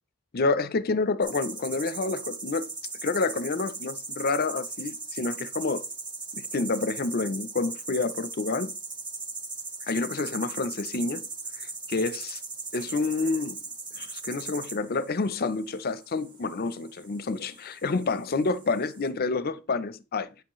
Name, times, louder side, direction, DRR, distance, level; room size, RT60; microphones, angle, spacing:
voice 1, 0.3-2.7 3.0-5.8 6.4-8.7 9.9-11.3 11.6-12.4 12.7-13.6 14.0-20.3, left 3 dB, 45° left, 0.6 m, -28 dB
sound 1, 1.2-19.1, right 4 dB, 20° right, 1.5 m, -39 dB
10.0 x 5.1 x 3.1 m
head